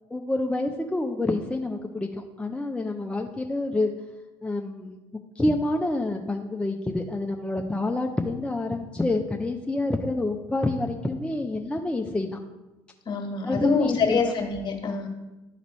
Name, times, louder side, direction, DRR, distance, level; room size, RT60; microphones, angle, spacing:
voice 1, 0.1-3.9 4.4-5.0 5.4-12.4 13.4-14.2, left 2 dB, 10° left, 2 dB, 0.5 m, -27 dB
voice 2, 13.0-15.1, left 4 dB, 40° left, 3 dB, 1.5 m, -25 dB
11.5 x 3.9 x 3.1 m, 1.1 s
supercardioid pair, 75°, 11 cm